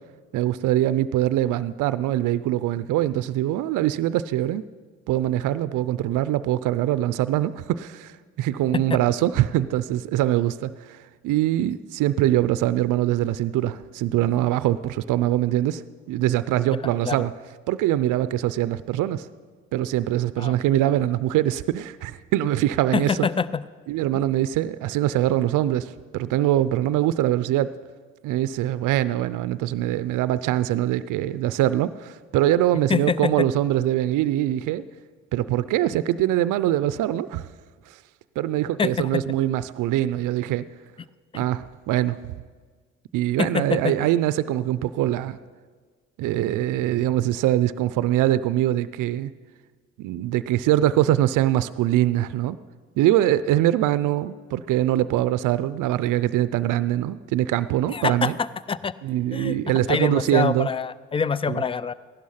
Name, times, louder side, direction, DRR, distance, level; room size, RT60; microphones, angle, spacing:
voice 1, 0.3-4.6 5.1-17.3 17.7-19.3 19.7-23.3 23.9-27.7 28.2-34.8 35.3-37.4 38.4-40.6 41.3-42.2 43.1-45.4 46.2-49.3 50.0-52.6 53.0-58.3 59.0-60.7 61.5-61.6, right 13 dB, 80° right, 15 dB, 0.5 m, -23 dB
voice 2, 22.9-23.6 32.9-33.3 38.8-39.2 41.3-41.5 43.4-44.0 57.9-58.9 59.3-59.6 59.9-61.9, left 5 dB, 20° left, 17 dB, 0.5 m, -25 dB
15.5 x 11.5 x 5.7 m, 1.5 s
supercardioid pair, 65°, 31 cm